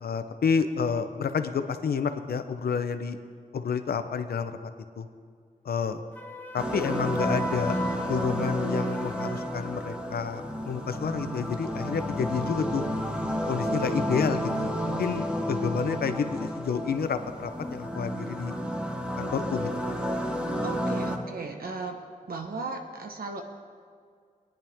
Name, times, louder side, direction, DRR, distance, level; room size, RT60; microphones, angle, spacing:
voice 1, 0.0-3.2 3.5-4.5 5.0-5.1 5.7-6.0 6.5-7.8 8.0-12.8 13.5-18.5 19.2-19.7, left 6 dB, 90° left, 9 dB, 0.7 m, -29 dB
Wind instrument woodwind instrument, 6.1-9.5, equal, 10° left, 1.4 m, -40 dB
sound 1, 6.6-21.2, equal, 5° right, 1.2 m, -31 dB
voice 2, 20.6-22.0 22.3-23.4, right 3 dB, 75° right, 4 dB, 1.3 m, -36 dB
18.5 x 10.5 x 3.5 m, 2.1 s
wide cardioid pair, 80°, 15 cm